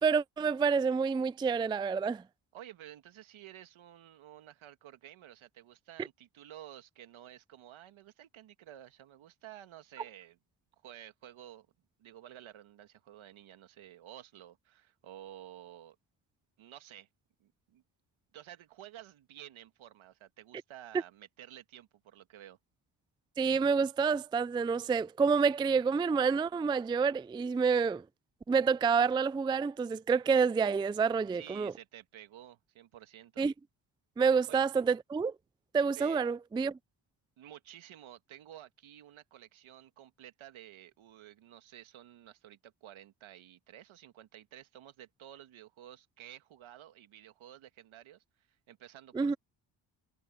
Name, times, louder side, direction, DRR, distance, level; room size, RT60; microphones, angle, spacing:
voice 1, 0.0-2.2 23.4-28.0 28.5-31.7 33.4-33.5 34.2-35.3 35.7-36.8 49.1-49.3, right 5 dB, 10° right, 0.3 m, -28 dB
voice 2, 2.5-10.4 10.8-11.7 12.0-16.0 16.6-17.1 17.4-17.8 18.3-22.6 31.3-33.5 34.5-34.6 36.0-36.2 37.4-49.4, right 12 dB, 75° right, 1.8 m, -52 dB
cardioid pair, 80°, 48 cm